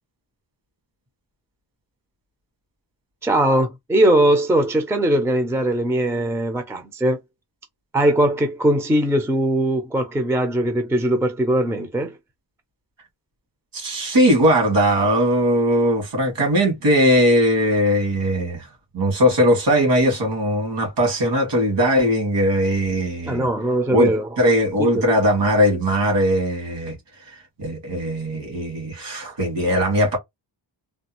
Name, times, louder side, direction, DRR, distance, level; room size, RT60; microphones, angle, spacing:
voice 1, 3.2-7.2 7.9-12.2 23.2-24.3 24.8-25.0, right 1 dB, 5° right, 0.5 m, -20 dB
voice 2, 13.7-18.7 18.9-23.4 23.9-24.1 24.4-27.0 27.3-27.4 27.6-30.2, equal, 70° right, 2.0 m, -19 dB
3.3 x 2.3 x 2.9 m
wide cardioid pair, 180°, 44 cm